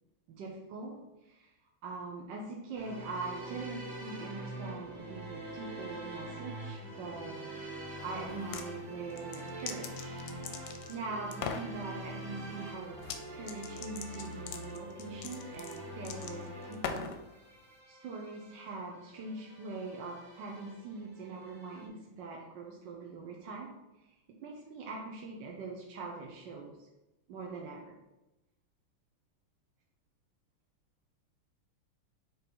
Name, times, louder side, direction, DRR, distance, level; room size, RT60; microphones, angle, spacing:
voice 1, 0.3-1.5 1.8-7.7 8.0-10.2 10.9-13.0 13.3-17.1 17.9-24.2 24.4-26.8 27.3-28.0, right 3 dB, 65° right, -1 dB, 1.3 m, -42 dB
sound 1, 2.7-21.9, right 1 dB, 40° right, 2.1 m, -45 dB
sound 2, 8.3-8.7 9.2-11.0 11.3-11.7 13.0-13.2 13.5-17.2, left 7 dB, 75° left, 1.2 m, -40 dB
6.6 x 3.4 x 4.5 m, 0.98 s
omnidirectional pair, 2.4 m